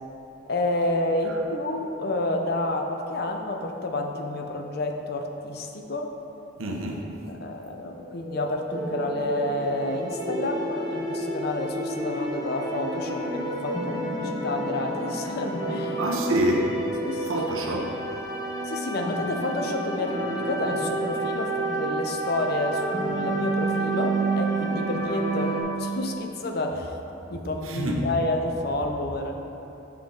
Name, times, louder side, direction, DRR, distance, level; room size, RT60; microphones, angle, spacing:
voice 1, 0.5-6.1 7.3-16.0 17.0-17.5 18.6-26.9 27.3-29.4, left 2 dB, 50° left, 4 dB, 0.5 m, -29 dB
voice 2, 6.6-7.0 16.0-16.7 17.3-17.9 27.6-28.0, right 1 dB, 85° right, 0 dB, 0.9 m, -26 dB
sound 1, 7.9-16.9, right 1 dB, 30° right, 0.6 m, -37 dB
sound 2, 8.7-25.6, right 2 dB, 20° left, 0.8 m, -30 dB
6.7 x 5.8 x 3.9 m, 3.0 s
head